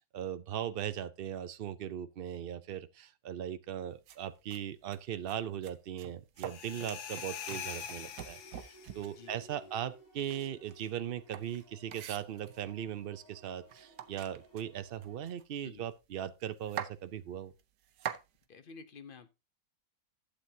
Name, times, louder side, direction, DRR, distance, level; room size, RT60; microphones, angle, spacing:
voice 1, 0.1-17.5, right 10 dB, 70° right, 0.5 m, -39 dB
sound 1, 4.1-4.2 4.5-4.6 4.9-5.4 5.6-9.3 10.1-12.7 13.4-13.5 13.7-15.8 16.1-16.2 16.4-16.9 17.6-18.3, right 10 dB, 85° right, 1.3 m, -44 dB
sound 2, 6.4-9.1, left 8 dB, 80° left, 1.5 m, -43 dB
sound 3, 7.5-15.1, right 2 dB, 10° right, 5.0 m, -60 dB
voice 2, 9.1-9.7 15.6-15.9 18.5-19.3, left 5 dB, 50° left, 0.6 m, -52 dB
12.0 x 7.7 x 2.7 m
omnidirectional pair, 1.7 m